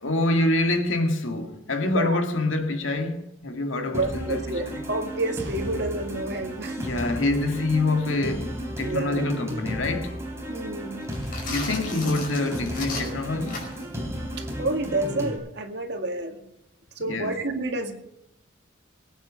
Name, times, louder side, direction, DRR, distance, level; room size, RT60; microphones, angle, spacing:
voice 1, 0.0-4.4 4.7-4.8 6.8-10.2 11.5-13.7 17.1-17.3, left 2 dB, 80° left, 1.9 m, -26 dB
voice 2, 1.8-2.2 3.8-6.8 8.8-9.3 10.5-11.0 14.4-16.4 17.0-17.9, right 2 dB, 55° right, 2.1 m, -29 dB
sound 1, 3.9-15.4, equal, 15° right, 3.7 m, -34 dB
sound 2, 11.0-13.9, left 3 dB, 45° left, 5.3 m, -35 dB
20.5 x 9.0 x 6.3 m
head